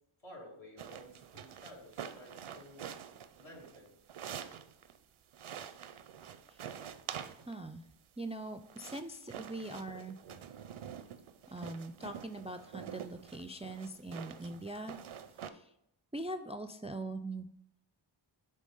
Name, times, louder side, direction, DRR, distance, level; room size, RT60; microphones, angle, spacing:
voice 1, 0.2-2.8 3.4-3.9, equal, 70° left, -4 dB, 2.5 m, -53 dB
sound 1, 0.8-5.0 5.3-7.7 8.4-15.5, right 8 dB, 80° right, 0.6 m, -47 dB
voice 2, 7.5-7.8 8.2-10.2 11.5-14.9 15.4-15.7 16.1-17.5, right 2 dB, 15° right, 8 dB, 0.3 m, -42 dB
6.3 x 3.9 x 5.3 m, 0.80 s
wide cardioid pair, 55°, 48 cm